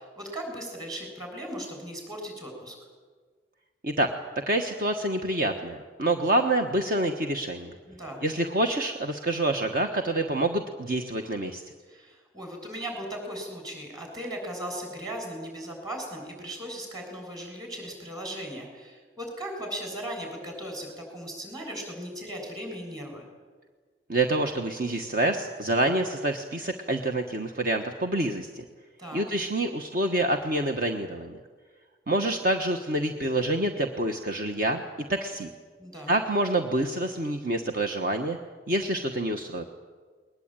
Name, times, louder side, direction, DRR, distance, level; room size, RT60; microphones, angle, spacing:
voice 1, 0.0-2.8 7.9-8.2 11.9-23.2 29.0-29.2 35.8-36.1, right 1 dB, 20° right, 2 dB, 7.3 m, -37 dB
voice 2, 4.5-7.7 8.2-11.6 24.1-28.6 29.1-31.4 32.1-34.8 35.1-35.5 36.1-38.4 38.7-39.6, right 1 dB, 55° right, 4 dB, 1.4 m, -27 dB
21.5 x 20.0 x 9.1 m, 1.5 s
head